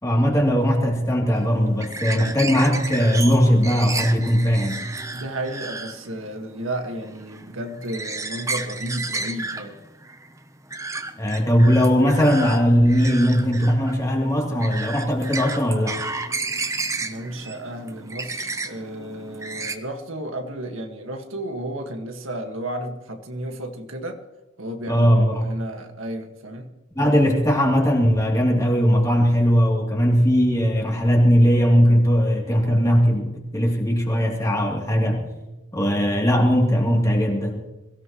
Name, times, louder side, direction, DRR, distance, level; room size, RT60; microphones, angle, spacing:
voice 1, 0.0-4.8 11.2-16.0 24.9-25.5 26.9-35.3 35.7-37.6, equal, 15° left, -1 dB, 2.9 m, -19 dB
sound 1, 1.3-19.7, right 3 dB, 15° right, 0.8 m, -32 dB
voice 2, 5.1-9.8 17.0-24.2 24.6-26.7, right 1 dB, 80° right, 4 dB, 1.8 m, -33 dB
23.0 x 16.5 x 3.1 m, 1.1 s
head